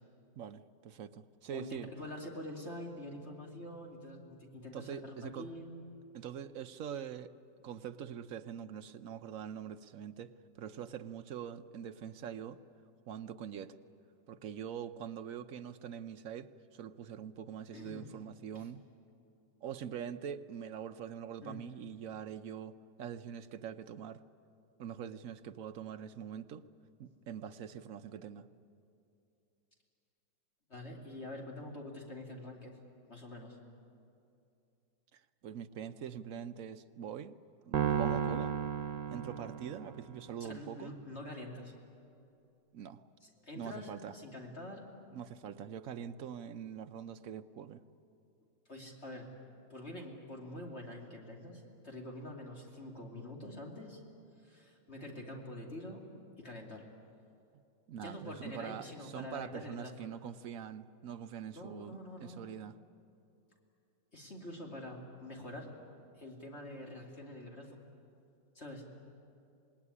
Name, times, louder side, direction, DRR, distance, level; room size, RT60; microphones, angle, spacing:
voice 1, 0.4-1.9 4.7-5.5 6.1-7.3 7.6-10.3 10.6-12.6 13.1-13.7 14.3-18.8 19.6-24.2 24.8-26.7 27.0-28.5 35.1-37.3 37.7-38.5 39.1-40.9 42.7-43.0 43.6-44.1 45.1-47.8 57.9-62.8, right 8 dB, 60° right, 9 dB, 1.0 m, -44 dB
voice 2, 1.5-5.8 17.7-18.1 18.5-18.7 21.4-21.6 30.7-32.8 33.1-33.6 40.4-41.7 43.2-44.9 48.7-49.3 49.7-54.0 54.4-56.1 56.4-56.9 58.0-60.1 61.5-62.4 64.1-65.7 66.1-67.8 68.5-68.9, left 1 dB, 35° left, 0 dB, 2.8 m, -46 dB
sound 1, 37.7-40.1, right 8 dB, 80° right, 1.6 m, -33 dB
26.5 x 20.0 x 9.7 m, 2.7 s
omnidirectional pair, 1.9 m